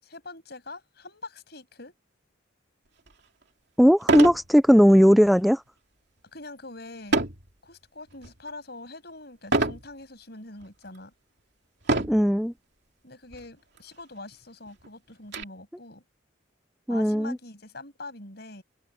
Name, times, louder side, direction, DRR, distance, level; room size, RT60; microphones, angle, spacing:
voice 1, 0.0-1.9 6.3-7.2 7.6-11.1 13.0-16.0 16.9-18.6, left 2 dB, 55° left, 7.3 m, -43 dB
sound 1, 3.1-3.2 4.0-4.5 4.9-5.2 7.1-7.5 8.1-8.5 9.5-9.9 10.6-10.7 11.8-12.3 13.3-13.4 13.8-13.9 14.3-15.4, right 2 dB, 55° right, 3.1 m, -26 dB
voice 2, 3.8-5.6 12.1-12.5 16.9-17.4, equal, ahead, 0.4 m, -18 dB
head